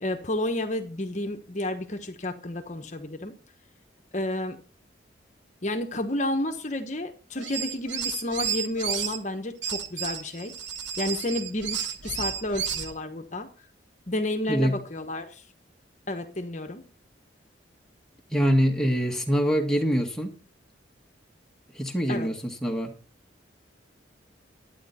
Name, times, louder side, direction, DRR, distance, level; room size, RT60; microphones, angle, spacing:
voice 1, 0.0-3.3 4.1-4.6 5.6-10.5 11.0-13.5 14.1-15.4 16.1-16.8 22.1-22.3, left 1 dB, 40° left, 1.1 m, -31 dB
sound 1, 7.4-9.2 9.6-12.9, right 7 dB, 75° right, 1.2 m, -32 dB
voice 2, 18.3-20.4 21.7-22.9, equal, 5° left, 1.9 m, -24 dB
11.5 x 9.5 x 4.2 m
head